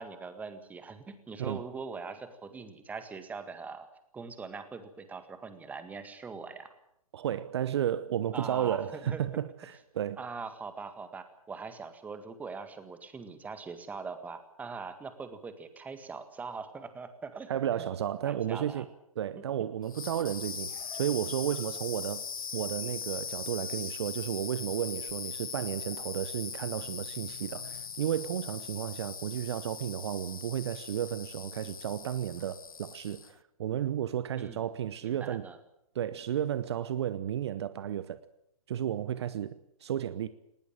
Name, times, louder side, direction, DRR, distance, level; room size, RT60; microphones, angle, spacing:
voice 1, 0.0-3.9 4.1-6.8 8.3-9.2 10.2-17.5 18.2-18.9 34.4-34.6 35.0-35.6, right 4 dB, 10° right, 1.9 m, -42 dB
voice 2, 7.1-9.5 10.0-10.2 17.5-18.8 19.2-22.3 22.5-35.4 35.9-38.2 38.7-39.5 39.8-40.3, right 10 dB, 50° right, 1.0 m, -33 dB
sound 1, 19.8-33.4, left 6 dB, 75° left, 0.8 m, -40 dB
19.5 x 18.5 x 9.0 m
figure-of-eight pair, 130°, 18 cm